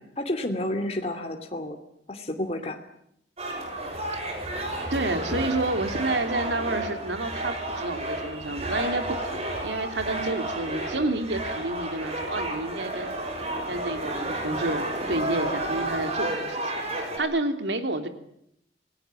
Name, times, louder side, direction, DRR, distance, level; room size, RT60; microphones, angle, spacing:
voice 1, 0.0-1.8 2.1-2.8, left 1 dB, 35° left, 5 dB, 2.6 m, -30 dB
sound 1, 3.4-17.2, right 1 dB, 35° right, 6.8 m, -31 dB
voice 2, 4.9-13.1 13.7-16.7 17.2-18.1, right 2 dB, 90° right, 8 dB, 3.1 m, -29 dB
27.5 x 18.5 x 9.2 m, 0.76 s
head